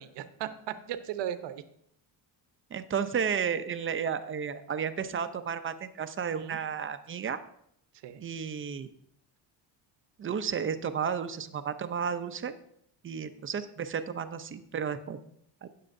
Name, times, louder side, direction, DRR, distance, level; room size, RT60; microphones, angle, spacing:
voice 1, 0.0-1.6 6.3-6.6 8.0-8.2, right 11 dB, 65° right, 11 dB, 0.9 m, -37 dB
voice 2, 2.7-7.4 8.2-8.9 10.2-12.5 13.0-15.2 15.6-15.7, right 7 dB, 30° right, 10 dB, 0.6 m, -32 dB
16.5 x 7.6 x 2.6 m, 0.71 s
cardioid pair, 130°, 44 cm